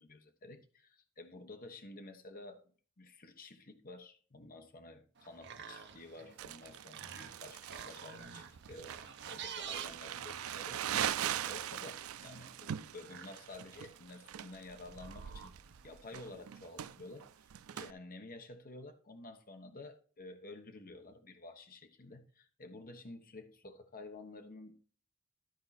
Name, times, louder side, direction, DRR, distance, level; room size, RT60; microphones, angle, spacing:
voice 1, 0.0-2.6 3.0-10.8 11.1-15.5 15.8-24.7, left 2 dB, 45° left, 1.2 m, -51 dB
sound 1, 5.2-16.0, right 7 dB, 55° right, 0.9 m, -51 dB
Crumpling crinkling, 6.4-17.9, right 10 dB, 90° right, 0.4 m, -41 dB
13.5 x 4.7 x 4.2 m
head